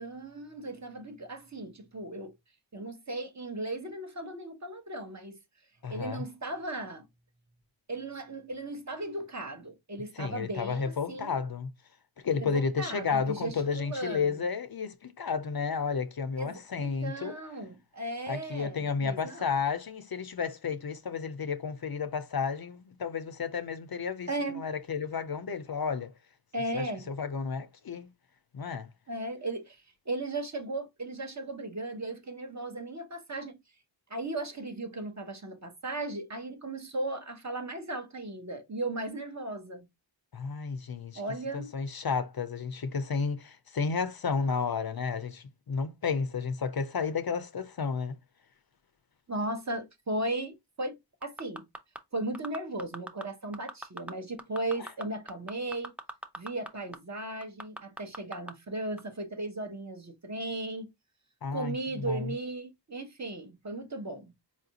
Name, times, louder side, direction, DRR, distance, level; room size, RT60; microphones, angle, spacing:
voice 1, 0.0-2.3 2.7-5.4 5.9-7.1 7.9-11.4 12.4-14.4 16.4-19.5 24.3-24.6 26.5-27.1 29.1-33.6 34.1-39.9 41.1-41.7 49.3-51.7 52.1-55.9 56.4-60.9 61.5-64.3, right 2 dB, 40° right, 0.8 m, -36 dB
voice 2, 5.8-6.3 10.2-11.7 12.2-17.3 18.3-24.3 24.6-26.1 26.7-28.1 28.5-28.9 40.3-41.2 41.5-48.1 61.4-62.3, left 5 dB, 55° left, 0.5 m, -32 dB
sound 1, 51.2-52.0 52.3-53.2 53.5-54.1 54.4-56.7 56.9-57.0 57.4-58.5 59.0-59.1, equal, 5° right, 0.5 m, -40 dB
4.3 x 2.5 x 2.8 m
wide cardioid pair, 45°, 46 cm